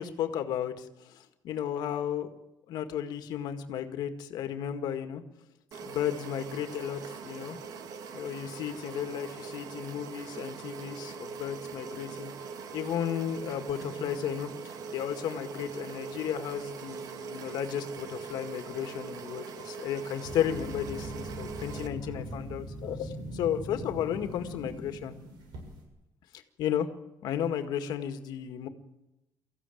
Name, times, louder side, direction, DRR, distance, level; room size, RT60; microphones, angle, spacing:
voice 1, 0.0-2.3 2.7-5.2 5.9-7.6 8.1-12.3 12.7-25.2 26.6-26.9 27.2-28.7, left 9 dB, 75° left, 7 dB, 1.9 m, -34 dB
sound 1, 5.7-21.9, right 6 dB, 60° right, 1.8 m, -42 dB
sound 2, 20.2-25.8, right 1 dB, 85° right, 7.6 m, -41 dB
24.0 x 15.0 x 9.1 m, 0.96 s
cardioid pair, 150°, 7 cm